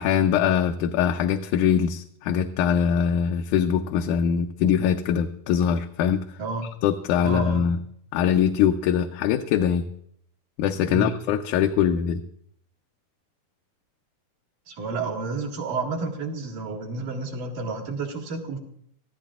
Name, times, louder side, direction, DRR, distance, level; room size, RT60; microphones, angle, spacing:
voice 1, 0.0-6.2 6.8-7.8 8.1-9.9 10.6-12.2, left 8 dB, 80° left, 5 dB, 2.1 m, -22 dB
voice 2, 6.4-6.7 7.2-7.7 10.9-11.1 14.7-18.6, right 3 dB, 75° right, -4 dB, 3.4 m, -30 dB
24.5 x 15.0 x 2.4 m, 0.69 s
omnidirectional pair, 3.7 m